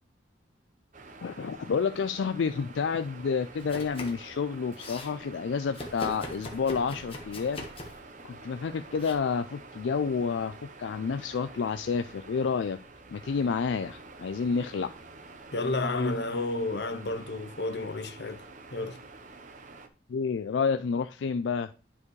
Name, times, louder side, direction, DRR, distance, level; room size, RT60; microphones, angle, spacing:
sound 1, 0.9-19.9, right 3 dB, 45° right, 0.9 m, -48 dB
voice 1, 1.2-7.6 8.2-12.8 13.1-14.9 20.1-21.7, left 5 dB, 80° left, 0.4 m, -29 dB
Domestic sounds home sounds, 3.6-4.3 4.5-5.1 5.7-8.1 8.9-9.1, left 1 dB, 30° left, 1.3 m, -41 dB
voice 2, 15.5-18.5 18.7-19.0, left 2 dB, 65° left, 0.7 m, -31 dB
10.5 x 4.9 x 3.2 m
head